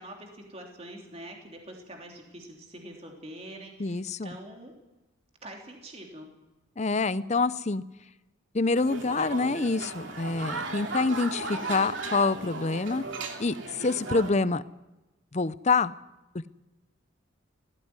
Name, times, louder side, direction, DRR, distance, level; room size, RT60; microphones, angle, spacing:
voice 1, 0.0-4.7 5.4-6.3, right 1 dB, 30° right, 1 dB, 3.3 m, -45 dB
voice 2, 3.8-4.3 6.8-7.8 8.5-13.0 13.4-14.6 15.3-15.9, left 3 dB, 35° left, 16 dB, 0.6 m, -26 dB
sound 1, 8.7-14.3, right 3 dB, 65° right, 2.9 m, -36 dB
18.0 x 15.0 x 9.7 m, 1.0 s
head